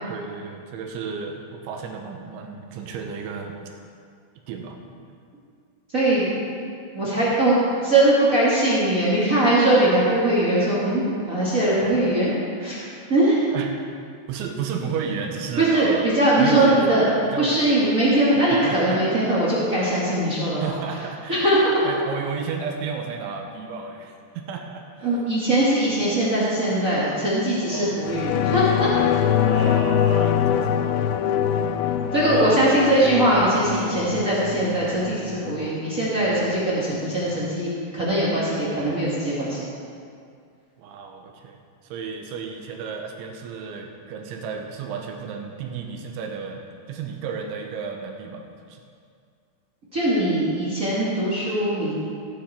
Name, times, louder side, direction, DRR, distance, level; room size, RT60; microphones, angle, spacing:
voice 1, 0.1-3.6 4.5-4.8 13.5-13.7 14.3-16.1 16.4-17.0 17.3-18.0 18.6-19.0 20.6-21.4 21.8-25.1 27.7-28.0 29.4-30.8 32.3-32.6 33.6-33.9 40.8-41.6 41.8-48.8, right 5 dB, 80° right, 3 dB, 3.3 m, -33 dB
voice 2, 5.9-6.3 6.9-7.6 7.8-12.3 12.6-13.4 15.6-17.0 17.4-20.8 21.3-21.7 25.0-28.9 32.1-39.7 49.9-52.0, right 1 dB, 65° right, -9 dB, 0.8 m, -21 dB
sound 1, 28.0-37.0 37.4-37.5, left 9 dB, 85° left, 2.6 m, -24 dB
16.5 x 9.4 x 4.4 m, 2.3 s
omnidirectional pair, 5.5 m